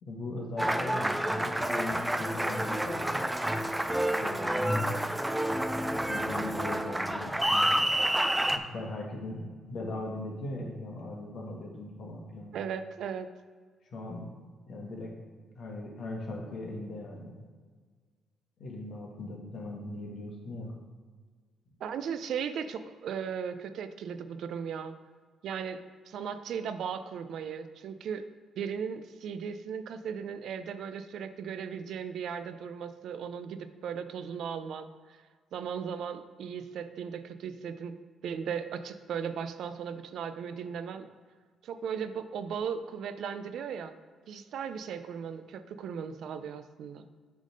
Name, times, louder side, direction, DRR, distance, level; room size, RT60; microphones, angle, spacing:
voice 1, 0.0-1.1 1.4-3.2 4.2-4.9 6.1-7.8 8.5-12.5 13.9-14.3 14.7-15.1 15.6-17.4 18.6-20.7, left 2 dB, 60° left, 0 dB, 1.7 m, -39 dB
Applause, 0.6-8.6, right 1 dB, 5° right, 0.5 m, -29 dB
voice 2, 12.5-13.3 21.8-24.9 25.4-28.2 28.6-35.2 35.5-38.0 38.2-41.1 41.6-43.9 44.3-47.1, right 7 dB, 75° right, 10 dB, 0.5 m, -37 dB
7.6 x 3.6 x 6.4 m, 1.6 s
cardioid pair, 90°, 0 cm